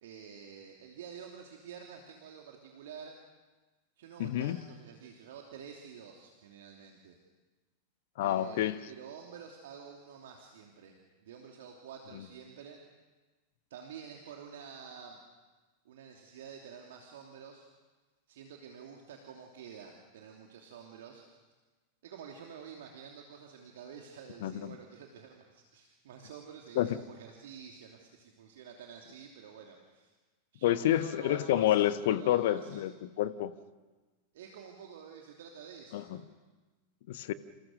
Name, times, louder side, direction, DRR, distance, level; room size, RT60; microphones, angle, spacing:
voice 1, 0.0-3.2 4.0-7.2 8.2-11.0 11.2-12.8 13.7-15.2 15.8-17.7 18.3-21.3 22.0-30.1 30.5-32.8 34.3-36.3, right 7 dB, 55° right, 1 dB, 2.9 m, -49 dB
voice 2, 4.2-4.6 8.2-8.8 24.4-24.8 26.8-27.0 30.6-33.5 35.9-36.2 37.1-37.3, left 12 dB, 55° left, 13 dB, 1.2 m, -29 dB
29.5 x 28.0 x 6.6 m, 1.3 s
figure-of-eight pair, 90°, 0 cm